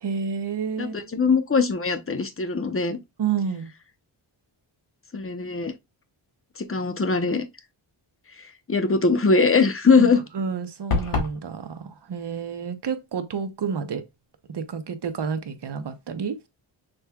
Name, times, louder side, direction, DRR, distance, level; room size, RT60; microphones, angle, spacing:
voice 1, 0.0-1.1 3.2-3.7 10.0-14.0 14.5-16.4, right 6 dB, 55° right, 0.9 m, -30 dB
voice 2, 0.8-3.0 5.1-5.7 6.6-7.4 8.7-10.2, left 4 dB, 25° left, 0.8 m, -21 dB
sound 1, 10.9-11.4, left 3 dB, 90° left, 1.5 m, -24 dB
6.3 x 3.5 x 2.3 m
wide cardioid pair, 90°, 50 cm